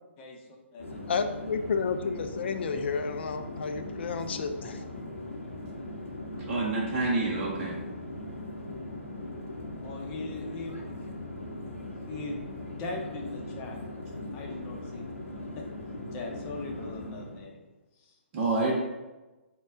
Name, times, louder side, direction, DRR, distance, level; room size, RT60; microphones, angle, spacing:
Conversation / Chatter / Fixed-wing aircraft airplane, 0.8-17.5, left 1 dB, 85° left, 0.7 m, -39 dB
voice 1, 1.1-4.8, left 5 dB, 55° left, 8 dB, 0.4 m, -31 dB
voice 2, 6.5-7.8 18.3-18.7, right 3 dB, 35° right, -4 dB, 0.7 m, -27 dB
voice 3, 9.8-10.9 11.8-12.4 12.8-13.8 14.3-15.1 15.5-15.7 16.1-17.6 18.0-18.2, left 3 dB, 25° left, 0 dB, 0.7 m, -40 dB
4.2 x 2.2 x 3.6 m, 1.1 s
figure-of-eight pair, 130°, 7 cm